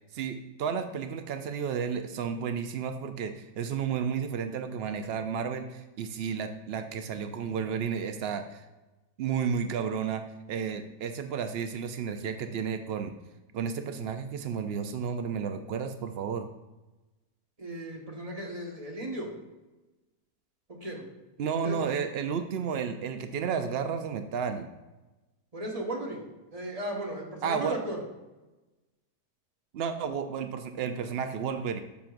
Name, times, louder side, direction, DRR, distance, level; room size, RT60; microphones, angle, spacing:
voice 1, 0.1-8.7 9.2-10.2 10.5-13.1 13.5-16.5 21.4-24.7 27.4-27.8 29.7-31.8, right 7 dB, 85° right, 7 dB, 0.5 m, -32 dB
voice 2, 17.6-19.3 20.7-21.0 21.5-21.8 25.5-26.2 26.5-28.0, right 1 dB, 25° right, -1 dB, 1.4 m, -36 dB
12.5 x 5.9 x 2.5 m, 1.1 s
omnidirectional pair, 1.7 m